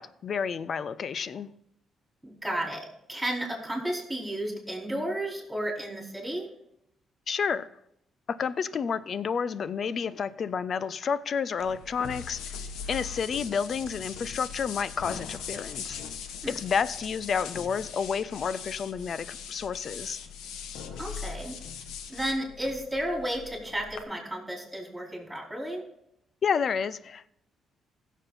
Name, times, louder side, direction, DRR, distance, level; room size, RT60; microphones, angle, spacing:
voice 1, 0.0-1.5 7.3-7.7 8.3-12.4 12.9-16.0 16.5-20.2 26.4-27.3, left 6 dB, 50° left, 0.5 m, -30 dB
voice 2, 2.2-6.5 16.4-16.6 21.0-21.6 22.1-25.8, right 1 dB, 10° right, 4.7 m, -33 dB
sound 1, 11.6-24.0, left 6 dB, 90° left, 1.0 m, -40 dB
15.5 x 7.3 x 4.2 m
cardioid pair, 90°, 0 cm